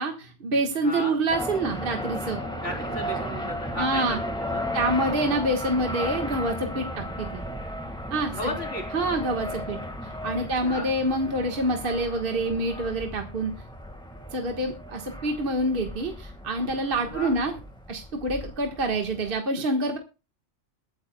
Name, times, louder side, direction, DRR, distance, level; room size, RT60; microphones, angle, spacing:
voice 1, 0.0-2.4 3.8-4.2 4.7-7.4 8.1-8.5 8.9-13.5 14.3-17.6 17.9-20.0, right 1 dB, 50° right, 3 dB, 1.6 m, -27 dB
voice 2, 0.8-1.1 2.6-4.2 4.5-4.7 8.3-8.8 10.4-10.9 17.0-17.3, left 1 dB, 55° left, 0 dB, 3.9 m, -34 dB
sound 1, 1.3-19.4, equal, 5° left, 1.5 m, -35 dB
22.5 x 9.3 x 2.2 m, 0.31 s
omnidirectional pair, 1.3 m